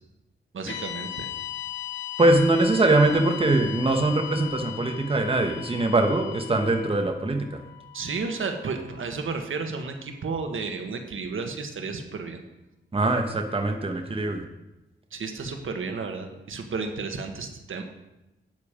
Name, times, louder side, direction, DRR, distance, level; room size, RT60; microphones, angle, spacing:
voice 1, 0.5-1.3 7.9-12.4 15.1-17.8, right 4 dB, 80° right, 5 dB, 1.4 m, -32 dB
sound 1, 0.7-9.0, left 13 dB, 60° left, 1.9 m, -38 dB
voice 2, 2.2-7.6 12.9-14.4, right 2 dB, 25° right, 4 dB, 1.1 m, -22 dB
12.0 x 9.1 x 5.1 m, 0.97 s
wide cardioid pair, 130°, 21 cm